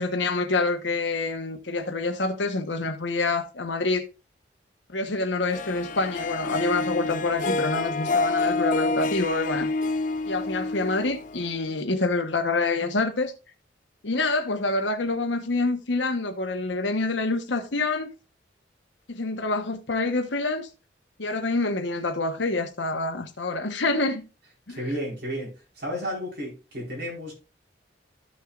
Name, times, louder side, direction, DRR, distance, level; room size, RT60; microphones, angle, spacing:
voice 1, 0.0-4.0 4.9-9.7 10.2-13.3 14.0-18.1 19.1-20.7 21.2-24.2 24.7-24.8, left 3 dB, 80° left, 1.1 m, -27 dB
Harp, 5.5-11.8, left 3 dB, 45° left, 0.6 m, -28 dB
voice 2, 24.7-27.3, equal, 55° right, 4.6 m, -32 dB
14.0 x 6.4 x 2.4 m
head